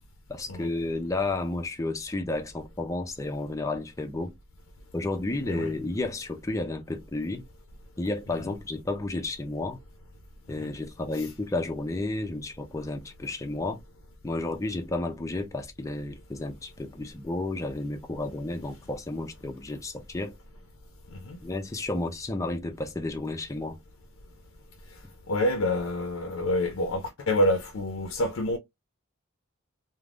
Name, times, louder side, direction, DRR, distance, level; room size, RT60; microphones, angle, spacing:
voice 1, 0.3-4.3 4.9-7.4 8.0-9.8 10.5-13.8 14.2-20.3 21.4-23.8, left 2 dB, 15° left, 0.4 m, -32 dB
voice 2, 25.3-28.6, left 1 dB, 80° left, 0.5 m, -27 dB
3.4 x 2.1 x 2.4 m
head